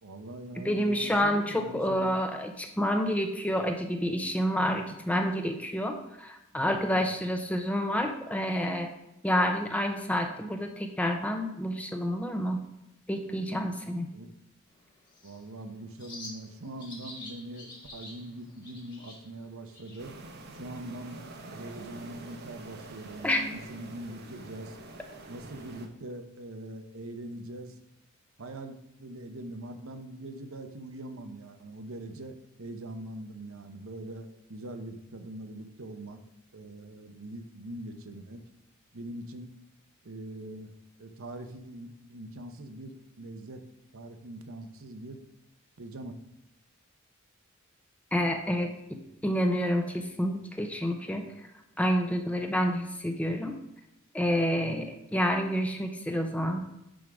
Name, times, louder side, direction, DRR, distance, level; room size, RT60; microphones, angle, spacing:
voice 1, 0.0-2.1 6.5-7.1 14.1-14.3 15.2-20.1 20.5-21.2 21.5-24.8 25.3-27.8 28.4-36.2 36.5-38.4 38.9-39.5 40.0-40.7 41.0-43.6 43.9-45.2 45.8-46.2, right 1 dB, 80° right, 7 dB, 0.9 m, -42 dB
voice 2, 0.6-8.9 9.2-12.6 13.1-14.1 23.2-23.4 48.1-51.3 51.8-53.6 54.1-56.7, equal, 5° left, 4 dB, 0.6 m, -29 dB
Bird, 14.7-23.6, left 2 dB, 20° left, 1.9 m, -51 dB
sound 1, 20.0-25.9, right 2 dB, 50° right, 0.9 m, -46 dB
10.0 x 3.8 x 4.8 m, 0.89 s
head